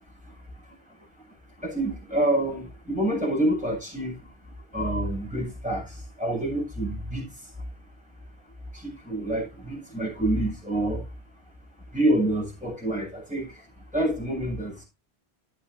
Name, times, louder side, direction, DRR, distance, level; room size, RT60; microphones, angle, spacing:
voice 1, 1.6-4.1 4.7-5.8 6.2-7.2 8.8-11.0 11.9-13.5 13.9-14.8, right 1 dB, 5° right, 7.7 m, -27 dB
11.5 x 11.5 x 2.7 m
omnidirectional pair, 1.1 m